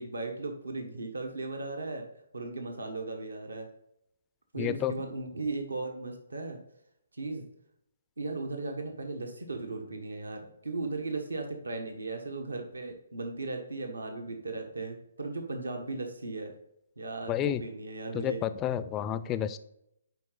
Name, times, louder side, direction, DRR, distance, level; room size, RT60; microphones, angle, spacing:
voice 1, 0.0-2.1 2.3-3.7 4.5-6.6 7.1-7.4 8.2-16.5 17.0-18.4, right 3 dB, 80° right, 4 dB, 1.1 m, -37 dB
voice 2, 4.6-4.9 17.3-17.6 18.1-19.6, left 11 dB, 20° left, 14 dB, 0.4 m, -30 dB
9.6 x 4.0 x 3.9 m, 0.78 s
figure-of-eight pair, 135°, 0 cm